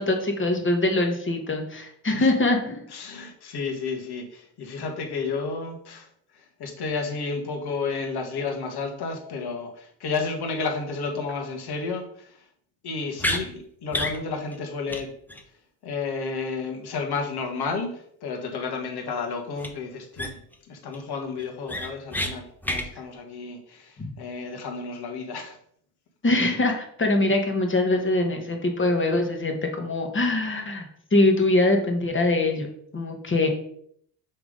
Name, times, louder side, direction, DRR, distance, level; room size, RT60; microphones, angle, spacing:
voice 1, 0.0-2.9 26.2-32.7 32.9-33.5, left 2 dB, 25° left, 3 dB, 1.6 m, -23 dB
voice 2, 2.9-6.1 6.3-12.4 12.8-15.1 15.8-20.4 20.7-25.6, left 4 dB, 50° left, 3 dB, 1.8 m, -32 dB
sound 1, 13.2-13.4 13.9-14.2 14.5-14.6 14.9-15.0 15.3-15.4 19.6-19.7 20.2-20.5 20.9-21.0 21.4-22.3 22.6-22.9, left 1 dB, 5° left, 0.9 m, -28 dB
6.2 x 3.5 x 5.2 m, 0.67 s
hypercardioid pair, 70°, 50 cm